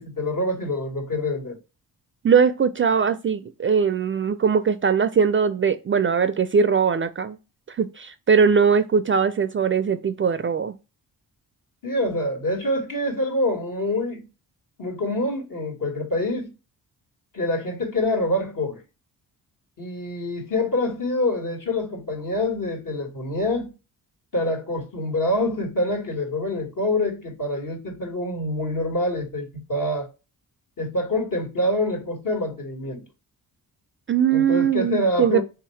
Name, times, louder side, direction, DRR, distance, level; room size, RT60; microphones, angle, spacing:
voice 1, 0.0-1.6 11.8-14.2 14.8-16.5 17.3-18.8 19.8-23.7 24.3-30.1 30.8-33.0 34.3-35.4, left 1 dB, 55° left, 1.6 m, -26 dB
voice 2, 2.2-7.4 7.7-10.7 34.1-35.4, right 6 dB, 35° right, 0.4 m, -20 dB
3.6 x 2.8 x 3.1 m
cardioid pair, 60°, 39 cm